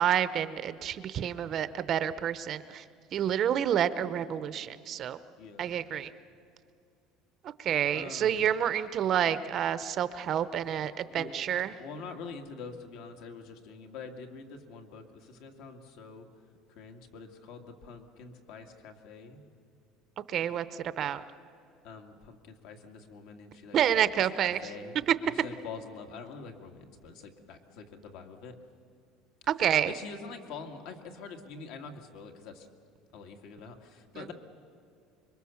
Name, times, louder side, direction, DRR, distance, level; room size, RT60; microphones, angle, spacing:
voice 1, 0.0-2.8 3.1-5.2 5.6-6.1 7.6-11.7 20.3-21.2 23.7-24.6 25.1-25.2 29.5-29.9, right 9 dB, 35° right, 13 dB, 0.7 m, -28 dB
voice 2, 5.4-5.8 7.9-8.5 11.1-11.3 11.8-16.3 16.8-19.4 21.8-23.8 24.4-25.0 25.2-28.5 29.8-32.7 33.1-34.3, left 4 dB, 65° left, 4 dB, 2.3 m, -45 dB
26.0 x 23.0 x 7.1 m, 2.4 s
cardioid pair, 170°, 0 cm